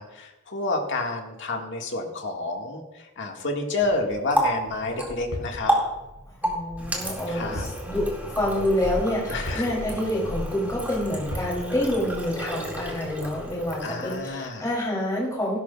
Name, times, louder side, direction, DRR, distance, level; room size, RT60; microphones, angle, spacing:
voice 1, 0.0-5.7 7.3-7.7 9.3-9.7 13.8-14.7, left 2 dB, 55° left, 1 dB, 1.8 m, -29 dB
Water tap faucet, 3.8-14.6, right 1 dB, 10° right, 2.1 m, -31 dB
sound 1, 5.3-5.6 7.6-7.8 8.1-8.2 9.5-9.8 11.3-11.6, equal, 75° left, 4.0 m, -34 dB
voice 2, 6.4-15.6, left 1 dB, 15° left, -3 dB, 3.0 m, -27 dB
18.0 x 11.5 x 2.4 m, 1.0 s
head